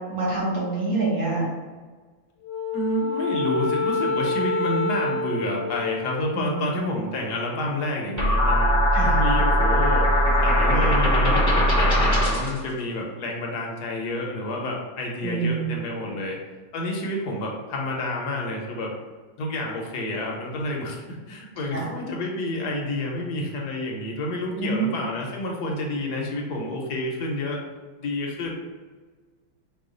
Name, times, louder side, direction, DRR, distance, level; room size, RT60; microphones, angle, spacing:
voice 1, 0.1-1.5 6.4-6.6 8.9-9.2 15.2-15.8 21.7-21.9 24.6-24.9, right 3 dB, 70° right, -7 dB, 1.9 m, -26 dB
Wind instrument woodwind instrument, 2.4-6.9, left 3 dB, 85° left, 1.4 m, -28 dB
voice 2, 2.7-16.4 16.7-18.9 19.4-27.6 28.0-28.5, left 1 dB, 65° left, -1 dB, 1.1 m, -29 dB
sound 1, 8.2-12.6, equal, 15° right, 0.8 m, -20 dB
4.7 x 2.3 x 3.8 m, 1.4 s
omnidirectional pair, 2.1 m